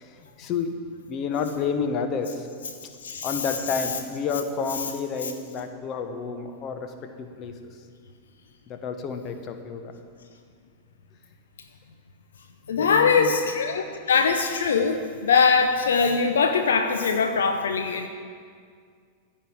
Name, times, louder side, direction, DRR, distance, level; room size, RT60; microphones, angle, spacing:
voice 1, 0.4-0.7 1.1-2.5 3.2-7.5 8.7-9.9 12.8-13.3, left 5 dB, 35° left, 7 dB, 1.0 m, -30 dB
voice 2, 3.0-3.4 5.2-5.3 12.7-18.1, left 5 dB, 65° left, 6 dB, 0.6 m, -22 dB
14.5 x 5.4 x 8.6 m, 2.1 s
figure-of-eight pair, 90°, 0 cm